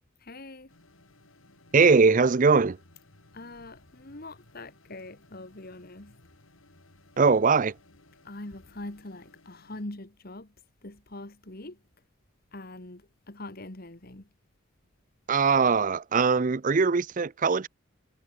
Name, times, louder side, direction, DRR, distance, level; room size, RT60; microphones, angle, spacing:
voice 1, 0.2-0.7 3.3-6.2 8.2-10.5 10.8-11.8 12.5-14.3, left 2 dB, 45° left, 1.9 m, -43 dB
sound 1, 0.7-9.8, left 2 dB, 75° left, 4.5 m, -59 dB
voice 2, 1.7-2.8 7.2-7.7 15.3-17.7, right 4 dB, 40° right, 0.5 m, -21 dB
head